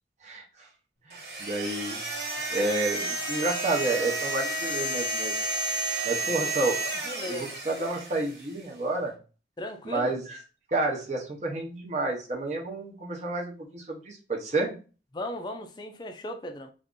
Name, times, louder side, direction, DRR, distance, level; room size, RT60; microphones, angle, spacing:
voice 1, 1.1-2.0 2.5-5.4 6.0-6.8 7.2-9.2 9.8-10.4 10.7-14.8, right 2 dB, 40° right, 0.7 m, -30 dB
sound 1, 1.1-8.5, right 2 dB, 70° right, 1.3 m, -31 dB
voice 2, 6.3-6.6 6.8-7.6 9.6-10.2 15.1-16.7, left 1 dB, 25° left, 0.4 m, -37 dB
2.6 x 2.5 x 3.6 m
head